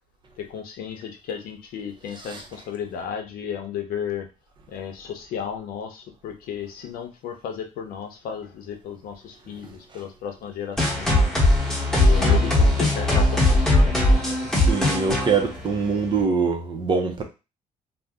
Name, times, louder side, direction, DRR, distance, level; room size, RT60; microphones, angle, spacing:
voice 1, 0.4-4.3 4.7-11.3 12.0-14.0, left 8 dB, 80° left, 4 dB, 0.7 m, -34 dB
sound 1, 10.8-16.2, left 1 dB, 5° left, 0.9 m, -19 dB
voice 2, 14.5-17.2, right 5 dB, 30° right, 3 dB, 0.5 m, -24 dB
2.6 x 2.0 x 3.5 m, 0.29 s
cardioid pair, 155°, 15 cm